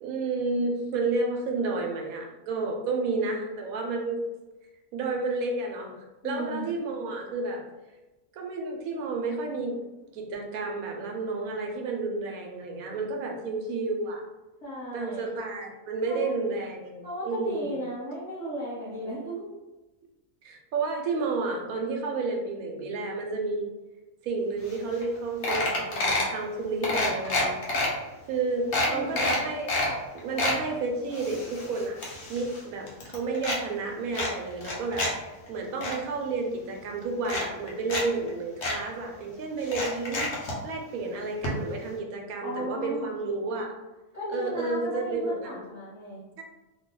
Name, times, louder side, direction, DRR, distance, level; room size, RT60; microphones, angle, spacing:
voice 1, 0.0-4.2 4.9-5.9 6.2-7.6 8.3-9.8 10.1-14.2 14.9-17.7 20.4-23.7 24.2-27.5 28.3-29.7 30.1-32.0 32.3-35.1 35.5-40.3 40.6-43.7 44.3-45.6 46.4-46.5, right 3 dB, 85° right, 2 dB, 1.1 m, -31 dB
voice 2, 6.2-6.6 14.6-15.2 16.0-16.3 17.0-19.5 28.5-29.4 42.4-43.1 44.1-46.2, equal, 30° left, -12 dB, 1.2 m, -35 dB
sound 1, 24.7-24.8 25.0-25.2 25.4-26.3 26.8-27.9 28.3-28.4 28.7-29.9 30.2-30.6 31.1-32.6 32.9-33.6 34.1-35.1 35.5-35.9 36.7-36.8 37.2-38.0 38.3-38.4 38.6-38.8 39.6-40.6 41.4-41.5 41.8-41.9, left 2 dB, 60° left, 1.0 m, -28 dB
2.7 x 2.2 x 3.7 m, 1.1 s
omnidirectional pair, 1.4 m